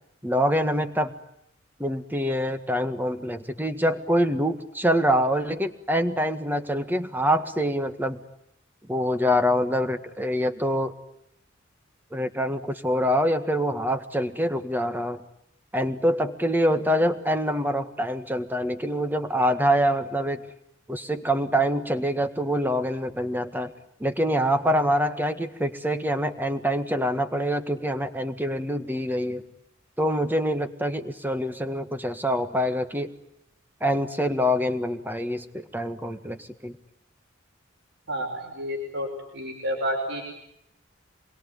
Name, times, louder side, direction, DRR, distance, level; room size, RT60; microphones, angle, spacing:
voice 1, 0.2-1.1 1.8-8.2 8.9-10.9 12.1-15.2 15.7-20.4 20.9-23.7 24.0-29.4 30.0-33.1 33.8-36.8, equal, 10° right, 8 dB, 1.7 m, -25 dB
voice 2, 38.1-39.1 39.3-40.2, equal, 65° right, -1 dB, 5.6 m, -29 dB
27.0 x 22.0 x 9.5 m, 0.80 s
head